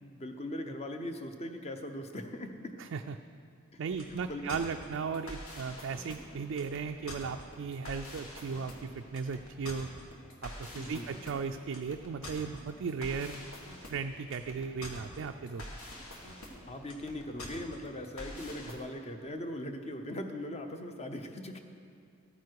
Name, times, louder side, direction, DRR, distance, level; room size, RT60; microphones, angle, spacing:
voice 1, 0.0-2.8 3.7-3.8 4.1-4.6 10.7-11.1 16.7-21.6, left 1 dB, 30° left, 6 dB, 0.8 m, -40 dB
voice 2, 2.8-3.1 3.8-9.9 10.4-13.4 13.9-15.7, right 5 dB, 60° right, 5 dB, 0.3 m, -36 dB
sound 1, 3.9-18.7, left 1 dB, 80° left, 1.8 m, -46 dB
14.0 x 9.5 x 4.7 m, 2.4 s
head